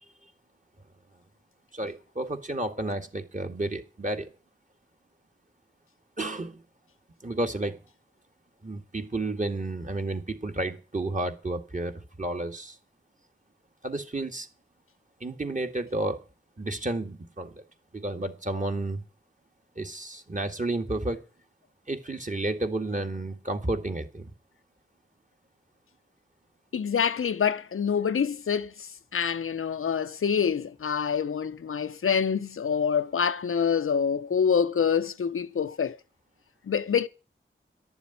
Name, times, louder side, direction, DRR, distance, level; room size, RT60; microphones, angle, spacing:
voice 1, 1.7-4.3 6.2-6.6 7.2-7.8 8.6-12.8 13.8-14.5 15.2-16.2 16.6-17.6 17.9-19.0 19.8-21.2 21.9-24.3, right 2 dB, 35° right, 2.1 m, -31 dB
voice 2, 26.7-36.0 36.6-37.1, left 7 dB, 85° left, 0.7 m, -26 dB
11.5 x 7.1 x 9.4 m
wide cardioid pair, 55°, 21 cm